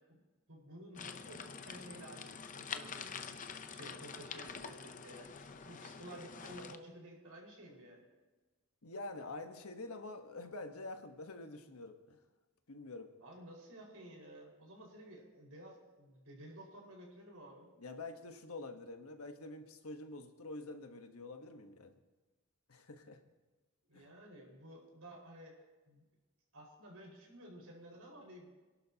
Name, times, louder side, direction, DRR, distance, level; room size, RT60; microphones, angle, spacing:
voice 1, 0.5-8.0 13.2-17.7 23.9-25.5 25.9-26.0 26.5-28.5, right 1 dB, 80° right, -2 dB, 5.0 m, -53 dB
sound 1, 1.0-6.8, left 6 dB, 35° left, 0.6 m, -46 dB
voice 2, 8.8-12.2 12.7-13.1 17.8-22.0 22.7-23.2 23.9-24.2, left 2 dB, 80° left, 6 dB, 1.3 m, -47 dB
26.0 x 11.5 x 2.9 m, 1.2 s
head